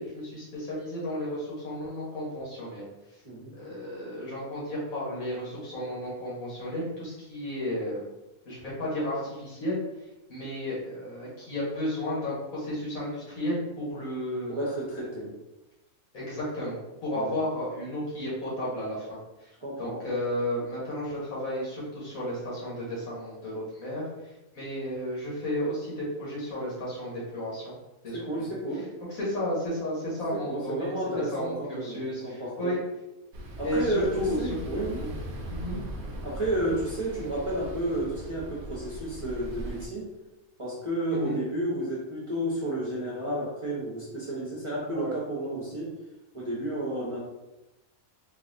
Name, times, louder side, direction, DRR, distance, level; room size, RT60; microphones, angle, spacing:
voice 1, 0.0-2.8 3.5-8.0 8.5-9.8 10.3-14.6 16.1-19.5 19.8-27.8 28.0-28.5 29.1-32.8 33.6-34.4 35.0-35.1 35.5-35.8 41.1-41.4 44.9-45.1, left 1 dB, 85° left, -6 dB, 1.8 m, -33 dB
voice 2, 3.2-3.6 14.5-15.3 17.1-17.4 19.6-20.0 28.1-28.8 30.3-32.7 33.6-35.0 36.2-40.1 40.6-45.9 46.3-47.2, right 1 dB, 30° right, -7 dB, 0.7 m, -31 dB
sound 1, 33.3-39.9, right 1 dB, 60° right, 0.8 m, -39 dB
3.9 x 2.5 x 2.5 m, 0.98 s
omnidirectional pair, 1.4 m